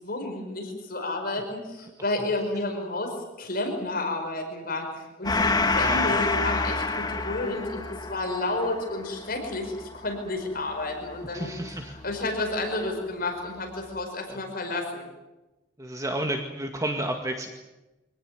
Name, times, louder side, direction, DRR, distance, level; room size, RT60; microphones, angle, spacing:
voice 1, 0.0-3.1 3.4-7.8 8.1-11.5 12.0-15.1, left 2 dB, 55° left, 3 dB, 5.3 m, -31 dB
Gong, 5.2-12.2, left 3 dB, 20° left, 2.0 m, -28 dB
voice 2, 5.8-6.2 11.3-11.9 14.3-14.4 15.8-17.5, right 1 dB, 20° right, 3 dB, 2.0 m, -31 dB
25.5 x 18.0 x 9.5 m, 1.1 s
head